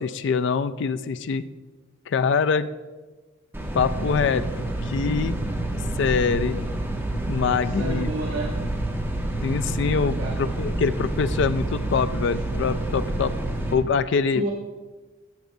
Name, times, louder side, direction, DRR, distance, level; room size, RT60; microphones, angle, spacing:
voice 1, 0.0-1.4 2.1-2.7 3.7-5.4 6.0-6.6 7.3-8.1 9.4-13.4 13.7-14.5, left 5 dB, 65° left, 12 dB, 0.3 m, -24 dB
sound 1, 3.5-13.7, right 1 dB, 10° right, 1.0 m, -28 dB
voice 2, 7.8-8.5 10.2-10.4 14.3-14.5, right 1 dB, 90° right, -2 dB, 1.0 m, -29 dB
11.5 x 6.8 x 2.7 m, 1.3 s
head